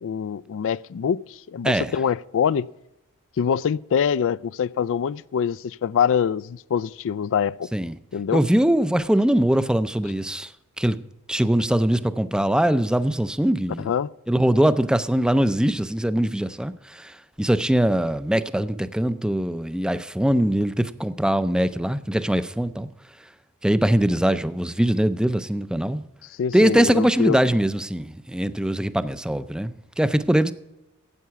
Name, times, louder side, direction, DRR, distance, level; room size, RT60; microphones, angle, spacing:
voice 1, 0.0-2.7 3.4-7.7 8.1-8.4 13.8-14.1 26.4-27.4, left 7 dB, 60° left, 0.3 m, -24 dB
voice 2, 8.3-10.5 10.8-11.0 11.3-13.9 14.3-22.9 23.6-26.0 26.5-30.5, right 1 dB, 5° right, 0.4 m, -22 dB
12.5 x 8.4 x 5.7 m
head